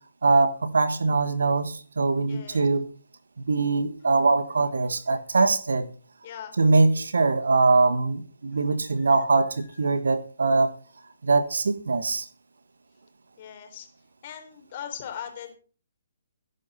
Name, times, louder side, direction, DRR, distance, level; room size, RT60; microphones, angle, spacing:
voice 1, 0.2-2.9 3.5-5.9 6.6-10.7 11.2-12.2, right 3 dB, 60° right, 1.6 m, -22 dB
voice 2, 2.3-2.6 6.2-6.5 8.8-9.2 9.6-9.9 13.4-13.9 14.2-15.6, left 9 dB, 35° left, 4.0 m, -40 dB
19.0 x 11.0 x 4.3 m
figure-of-eight pair, 130°, 0 cm